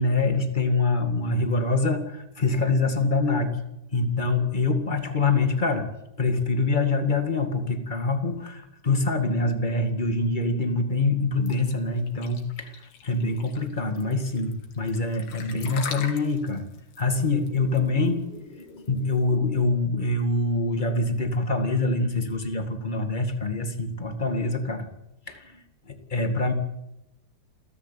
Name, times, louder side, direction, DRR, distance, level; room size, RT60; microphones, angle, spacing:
voice 1, 0.0-3.5 3.9-5.9 6.2-16.7 17.0-24.9 25.3-26.5, left 3 dB, 45° left, 6 dB, 0.6 m, -25 dB
sound 1, 11.5-19.1, left 7 dB, 90° left, 4.8 m, -41 dB
28.5 x 15.0 x 9.1 m, 0.88 s
omnidirectional pair, 4.6 m